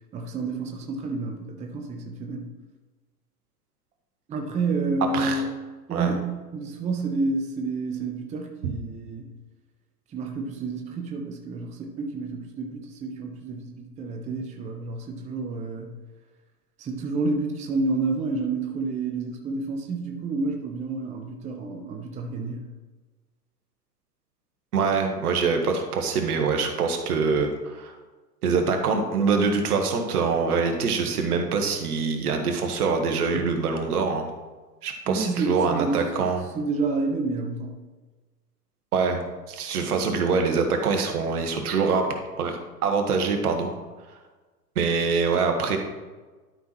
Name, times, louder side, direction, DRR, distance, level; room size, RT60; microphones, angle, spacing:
voice 1, 0.1-2.5 4.3-5.5 5.9-9.3 10.1-15.9 16.8-22.7 35.1-36.0 36.5-37.8, right 3 dB, 15° right, 2 dB, 0.7 m, -29 dB
voice 2, 24.7-28.0 28.4-34.3 34.8-36.5 38.9-42.1 42.4-43.7 44.7-45.8, right 5 dB, 65° right, 4 dB, 1.5 m, -24 dB
12.0 x 5.6 x 3.0 m, 1.3 s
hypercardioid pair, 105°, 49 cm